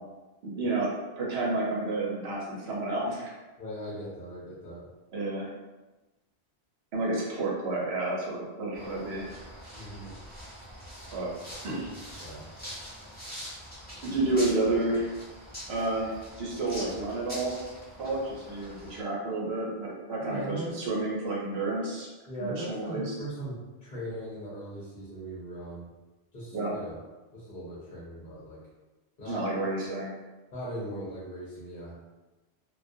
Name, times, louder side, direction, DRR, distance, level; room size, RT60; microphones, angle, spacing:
voice 1, 0.4-0.9 1.2-3.3 5.1-5.5 6.9-9.3 11.1-11.3 11.6-11.9 14.0-15.1 15.7-17.5 18.0-22.1 22.4-23.1 26.5-26.7 29.3-30.1, right 2 dB, 70° right, -4 dB, 0.9 m, -30 dB
voice 2, 3.6-4.9 9.7-10.2 12.2-12.4 20.2-20.7 22.3-25.9 26.3-27.0 27.3-28.6 29.2-29.4 30.5-31.9, right 1 dB, 50° left, -8 dB, 0.8 m, -39 dB
sound 1, 8.7-19.0, equal, 10° left, 0.7 m, -44 dB
2.3 x 2.2 x 2.5 m, 1.1 s
omnidirectional pair, 1.1 m